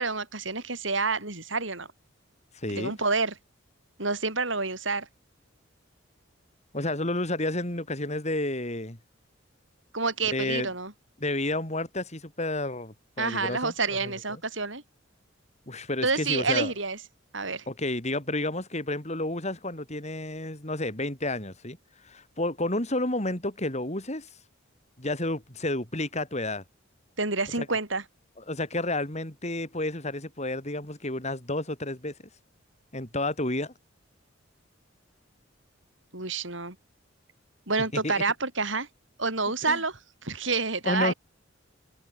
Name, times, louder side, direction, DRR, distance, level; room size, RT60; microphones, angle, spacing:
voice 1, 0.0-1.9 2.8-3.3 4.0-5.1 9.9-10.9 13.2-14.8 16.0-17.0 17.3-17.6 27.2-28.0 36.1-36.8 37.7-38.9 39.2-41.1, right 4 dB, 70° right, 7.3 m, -28 dB
voice 2, 2.5-3.0 6.7-9.0 10.3-10.7 11.2-13.7 14.0-14.4 15.7-16.7 17.7-21.8 22.0-24.3 25.0-26.6 27.6-27.7 28.4-32.1 32.9-33.7 37.9-38.2 39.6-39.8 40.8-41.1, left 2 dB, 35° left, 5.6 m, -31 dB
head